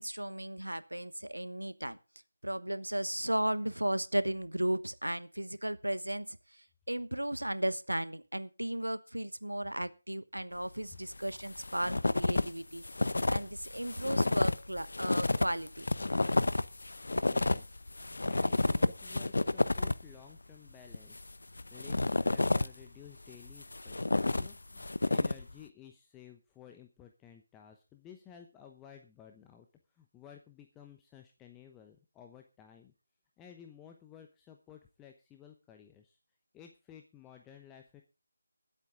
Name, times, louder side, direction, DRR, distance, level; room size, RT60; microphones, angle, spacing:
voice 1, 0.0-2.0 2.4-6.4 6.9-12.9 13.3-15.9, right 1 dB, 90° right, 14 dB, 1.1 m, -35 dB
sound 1, 11.2-12.5 12.8-20.1 20.9-22.8 23.3-25.5, left 2 dB, 65° left, 0.7 m, -30 dB
voice 2, 17.1-17.8 18.3-29.7 29.9-32.9 33.4-36.2 36.5-38.0, left 9 dB, 10° left, 4 dB, 0.9 m, -55 dB
20.5 x 8.2 x 3.8 m, 0.30 s
figure-of-eight pair, 155°, 0 cm